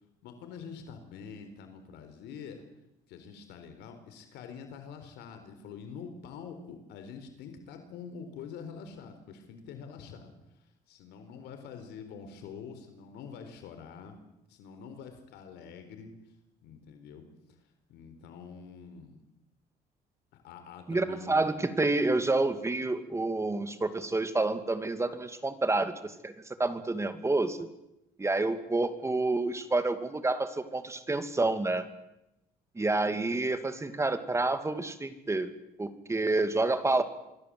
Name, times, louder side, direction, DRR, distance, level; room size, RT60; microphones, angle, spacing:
voice 1, 0.2-2.6 3.1-10.3 10.9-14.2 14.5-16.1 16.6-17.2 17.9-19.2 20.3-21.4, left 6 dB, 85° left, 7 dB, 4.1 m, -46 dB
voice 2, 20.9-26.3 26.6-27.7 28.2-31.9 32.8-35.5 35.8-37.0, right 2 dB, 15° right, 9 dB, 2.4 m, -29 dB
26.0 x 23.0 x 7.8 m, 0.91 s
cardioid pair, 110°, 17 cm